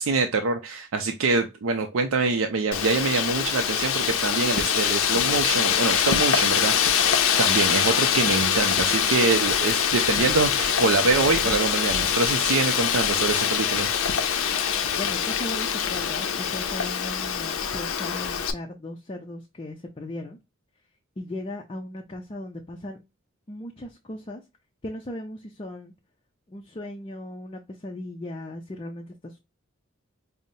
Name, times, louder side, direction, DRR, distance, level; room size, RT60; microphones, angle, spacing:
voice 1, 0.0-7.1 7.4-13.9, right 4 dB, 75° right, 0.5 m, -25 dB
Wind, 2.7-18.5, left 8 dB, 90° left, 0.5 m, -24 dB
voice 2, 14.9-20.4 21.2-23.0 23.5-24.4 24.8-25.9 26.5-29.4, left 1 dB, 25° left, 0.4 m, -37 dB
5.2 x 2.0 x 2.6 m
head